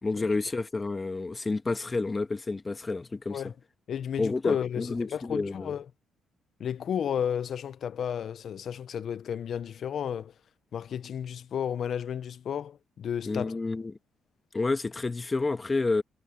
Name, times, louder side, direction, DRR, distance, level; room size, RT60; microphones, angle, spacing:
voice 1, 0.0-3.5 4.2-5.7 13.2-14.0 14.5-16.0, left 3 dB, 25° left, 1.5 m, -30 dB
voice 2, 3.9-5.9 6.6-10.3 10.7-13.6, left 8 dB, 60° left, 0.7 m, -33 dB
cardioid pair, 90°, 0 cm